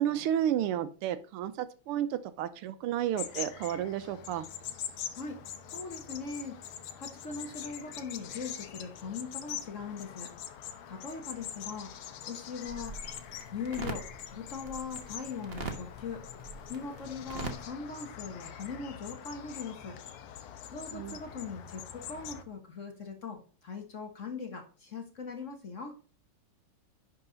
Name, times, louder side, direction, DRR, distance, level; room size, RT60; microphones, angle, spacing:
voice 1, 0.0-4.5 20.9-21.2, right 10 dB, 80° right, 12 dB, 1.6 m, -32 dB
sound 1, 3.2-22.4, left 9 dB, 80° left, 1.7 m, -44 dB
voice 2, 5.1-10.3 10.9-11.9 12.2-12.9 13.5-16.3 16.7-20.0 20.7-26.0, left 5 dB, 40° left, 4 dB, 1.3 m, -40 dB
sound 2, 12.7-17.6, right 3 dB, 35° right, 1.1 m, -43 dB
10.5 x 4.8 x 3.9 m, 0.38 s
omnidirectional pair, 2.4 m